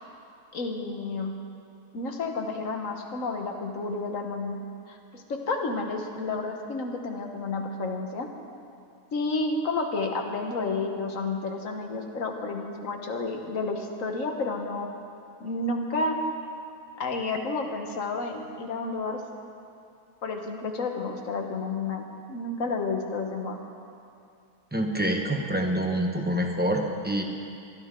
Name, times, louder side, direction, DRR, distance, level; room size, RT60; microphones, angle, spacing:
voice 1, 0.5-1.4 1.9-4.6 4.9-8.3 9.1-14.9 15.4-16.2 17.0-19.2 20.2-23.6, left 3 dB, 55° left, 3 dB, 1.5 m, -31 dB
voice 2, 24.7-27.2, right 1 dB, 10° right, 1 dB, 0.7 m, -26 dB
24.0 x 10.5 x 3.7 m, 2.5 s
omnidirectional pair, 1.7 m